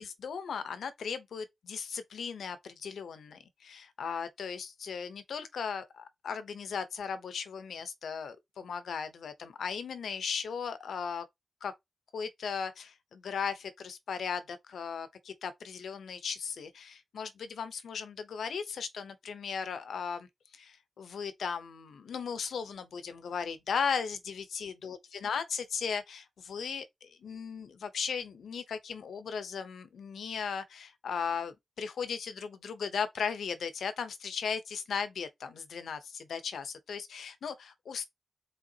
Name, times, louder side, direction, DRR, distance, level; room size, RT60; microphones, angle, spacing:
voice 1, 0.0-11.3 11.6-11.7 12.1-38.1, left 6 dB, 85° left, 0.7 m, -37 dB
4.9 x 3.6 x 2.8 m
cardioid pair, 50°, 0 cm